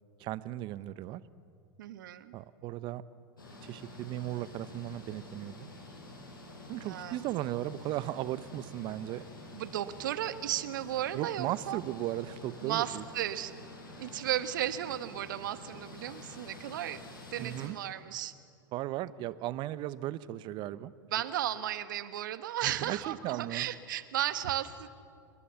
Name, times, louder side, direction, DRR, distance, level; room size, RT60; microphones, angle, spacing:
voice 1, 0.2-1.2 2.3-3.0 3.4-5.7 6.7-9.2 11.1-13.1 17.4-17.8 18.7-20.9 22.6-23.7, right 14 dB, 45° right, 16 dB, 0.9 m, -36 dB
voice 2, 1.8-2.3 6.8-7.2 9.5-11.8 12.6-13.5 14.0-17.0 17.3-18.3 21.1-24.9, right 12 dB, 70° right, 12 dB, 1.3 m, -34 dB
sound 1, 3.4-17.7, left 2 dB, 85° left, 6.3 m, -49 dB
28.5 x 21.0 x 7.1 m, 2.3 s
hypercardioid pair, 95°, 11 cm